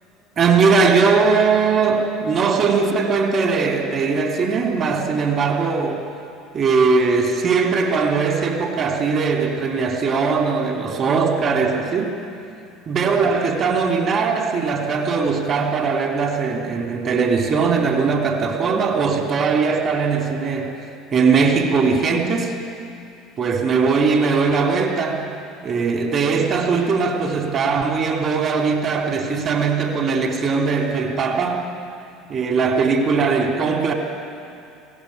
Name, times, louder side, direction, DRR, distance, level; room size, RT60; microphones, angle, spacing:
voice 1, 0.4-6.0 6.5-12.1 12.8-20.8 21.1-22.5 23.4-25.2 25.6-31.7 32.3-33.9, right 5 dB, 40° right, 2 dB, 3.4 m, -20 dB
22.5 x 17.0 x 9.6 m, 2.7 s
hypercardioid pair, 65°, 0 cm